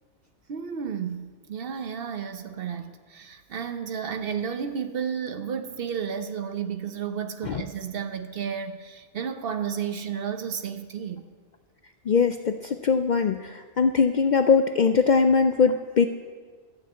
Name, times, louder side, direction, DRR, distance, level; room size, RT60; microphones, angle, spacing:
voice 1, 0.5-11.3, right 7 dB, 60° right, 9 dB, 0.9 m, -32 dB
voice 2, 12.1-16.1, left 5 dB, 60° left, 8 dB, 0.5 m, -21 dB
12.0 x 6.8 x 8.1 m, 1.6 s
omnidirectional pair, 1.2 m